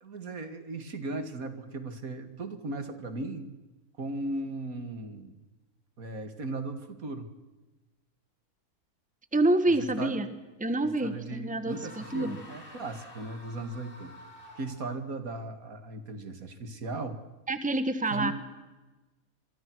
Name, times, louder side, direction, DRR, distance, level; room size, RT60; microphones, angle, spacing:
voice 1, 0.0-3.5 4.0-5.3 6.0-7.3 9.8-10.1 11.0-14.1 14.6-17.2 18.1-18.3, right 2 dB, 70° right, 9 dB, 2.5 m, -37 dB
voice 2, 9.3-10.3 10.6-12.4 17.5-18.3, right 2 dB, 5° right, 11 dB, 1.3 m, -27 dB
sound 1, 11.7-15.0, left 2 dB, 35° left, 4.3 m, -49 dB
27.0 x 23.0 x 6.2 m, 1.1 s
omnidirectional pair, 1.5 m